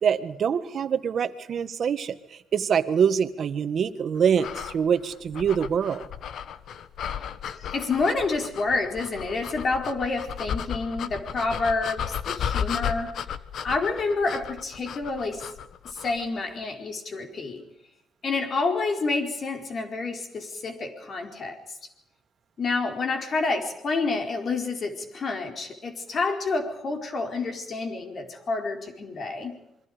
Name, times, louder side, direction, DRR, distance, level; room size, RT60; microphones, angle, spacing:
voice 1, 0.0-2.2 2.5-6.0, right 7 dB, 55° right, 11 dB, 1.6 m, -24 dB
sound 1, 4.4-16.3, left 8 dB, 70° left, 1.2 m, -34 dB
voice 2, 7.5-13.2 13.6-15.5 15.8-17.6 18.2-21.6 22.6-29.5, left 3 dB, 50° left, 4 dB, 4.6 m, -28 dB
28.0 x 23.0 x 5.2 m, 0.85 s
cardioid pair, 90°, 0 cm